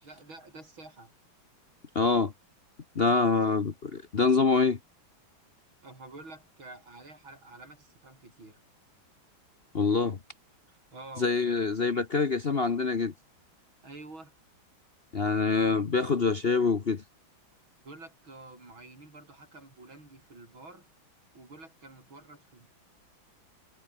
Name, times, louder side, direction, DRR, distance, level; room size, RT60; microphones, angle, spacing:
voice 1, 0.0-1.1 5.8-8.6 10.9-11.7 13.8-14.3 17.8-20.9 21.3-22.7, right 2 dB, 80° right, 8.1 m, -49 dB
voice 2, 1.9-2.3 2.9-4.8 9.7-10.2 11.2-13.1 15.1-17.0, left 4 dB, 35° left, 1.1 m, -25 dB
omnidirectional pair, 2.2 m